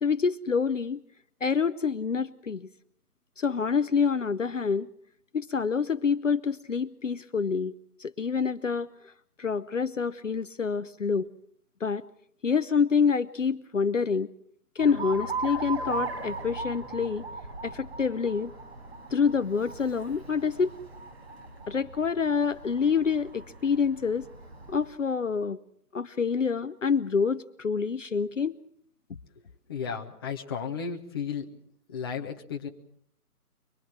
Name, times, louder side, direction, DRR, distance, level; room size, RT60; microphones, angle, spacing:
voice 1, 0.0-1.0 1.4-2.7 3.4-4.9 5.3-7.7 8.0-8.9 9.4-11.3 11.8-12.0 12.4-14.3 14.8-17.2 17.6-18.5 19.1-20.7 21.7-24.3 24.7-25.6 25.9-28.6, left 5 dB, 55° left, 12 dB, 0.9 m, -27 dB
Alarm, 14.8-24.9, right 3 dB, 40° right, 6.5 m, -39 dB
voice 2, 29.7-31.4 31.9-32.7, left 6 dB, 15° left, 2 dB, 1.2 m, -34 dB
24.5 x 23.5 x 6.2 m, 0.67 s
figure-of-eight pair, 150°, 46 cm